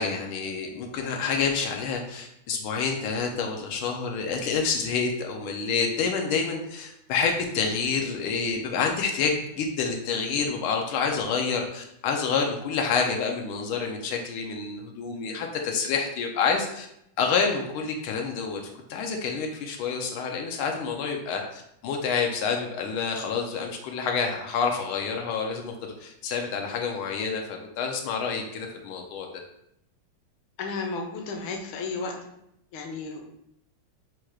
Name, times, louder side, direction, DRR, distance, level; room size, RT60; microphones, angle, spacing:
voice 1, 0.0-16.9 17.2-29.3, left 5 dB, 90° left, 2 dB, 1.5 m, -28 dB
voice 2, 30.6-32.3 32.7-33.3, left 4 dB, 75° left, 3 dB, 1.4 m, -33 dB
4.5 x 2.3 x 4.7 m, 0.77 s
omnidirectional pair, 2.3 m